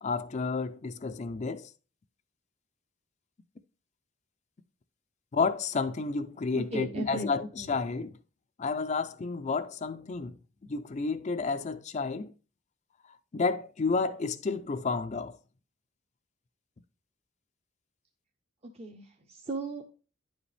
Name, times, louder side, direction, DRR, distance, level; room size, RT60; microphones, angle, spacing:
voice 1, 0.0-1.7 5.3-8.2 8.6-10.4 10.7-12.3 13.0-15.4, left 4 dB, 35° left, 0.4 m, -31 dB
voice 2, 6.6-7.3 7.6-7.7 18.6-19.8, right 2 dB, 30° right, 0.7 m, -36 dB
10.0 x 5.0 x 3.3 m
head